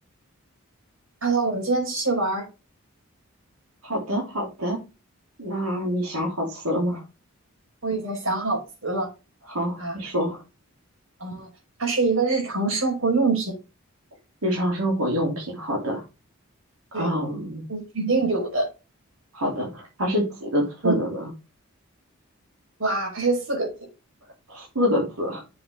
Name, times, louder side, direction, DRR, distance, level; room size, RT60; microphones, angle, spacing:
voice 1, 1.2-2.5 7.8-9.1 9.8-10.0 11.2-11.5 11.8-13.6 16.9-17.1 17.7-18.7 20.8-21.0 22.8-23.7, right 3 dB, 65° right, 5.2 m, -24 dB
voice 2, 3.8-4.8 5.4-7.0 9.5-10.4 14.4-16.0 16.9-17.6 19.3-21.2 24.5-25.4, equal, 85° right, 3.4 m, -26 dB
7.5 x 6.8 x 3.7 m
head